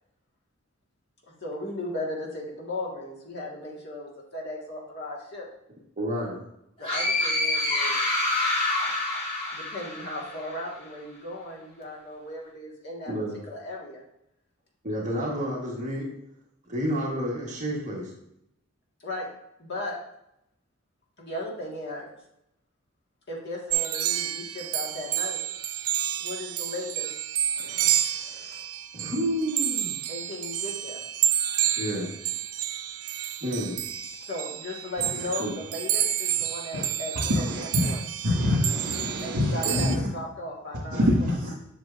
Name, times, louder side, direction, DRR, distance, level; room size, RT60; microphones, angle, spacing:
voice 1, 1.4-5.5 6.8-8.0 9.5-13.1 13.5-14.0 19.0-19.3 19.6-20.0 21.2-22.1 23.3-25.4 26.2-27.1 30.1-31.0 34.2-38.0 39.2-41.1 41.4-41.5, left 1 dB, 50° left, -2 dB, 1.7 m, -36 dB
voice 2, 6.0-6.4 13.1-13.4 14.8-16.1 16.7-18.1 27.6-28.6 28.9-30.0 31.8-32.1 33.4-33.8 35.4-35.5 39.6-40.0, equal, 35° right, -3 dB, 1.4 m, -30 dB
sound 1, 6.8-10.5, left 2 dB, 25° left, 1.8 m, -27 dB
sound 2, 23.7-40.0, right 11 dB, 90° right, 0.5 m, -30 dB
voice 3, 37.3-37.9 38.2-40.0 40.9-41.5, left 1 dB, 60° right, -8 dB, 1.9 m, -25 dB
7.7 x 6.0 x 2.6 m, 0.81 s
head